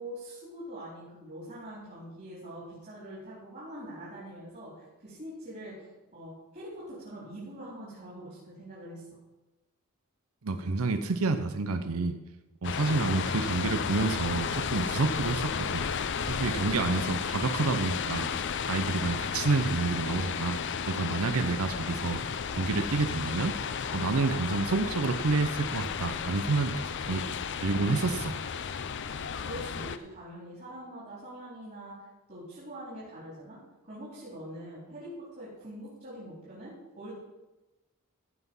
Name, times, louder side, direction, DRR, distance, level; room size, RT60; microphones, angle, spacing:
voice 1, 0.0-9.0 29.4-33.6 33.8-37.2, right 1 dB, 40° right, -8 dB, 4.2 m, -44 dB
voice 2, 10.4-12.2 12.6-15.9 16.3-18.3 18.6-20.6 20.9-22.2 22.5-23.5 23.9-27.2 27.6-28.4, right 3 dB, 75° right, 9 dB, 0.7 m, -29 dB
sound 1, 12.6-30.0, left 6 dB, 55° left, 0.5 m, -33 dB
15.5 x 5.9 x 5.5 m, 1.1 s
head